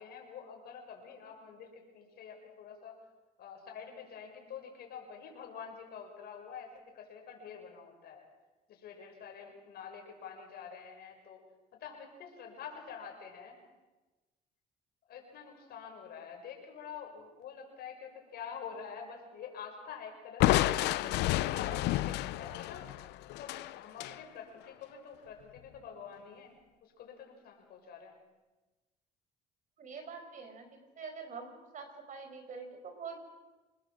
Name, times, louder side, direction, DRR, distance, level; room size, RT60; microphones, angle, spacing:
voice 1, 0.0-3.0 3.4-8.2 8.7-11.4 11.7-13.6 15.1-20.7 21.0-22.9 23.2-26.5 26.8-28.2, left 7 dB, 70° left, 2 dB, 6.9 m, -47 dB
Crushing, 20.4-24.2, left 16 dB, 85° left, 0.7 m, -30 dB
voice 2, 29.8-33.2, right 5 dB, 50° right, 7 dB, 5.3 m, -45 dB
28.0 x 20.0 x 7.7 m, 1.2 s
cardioid pair, 110°, 17 cm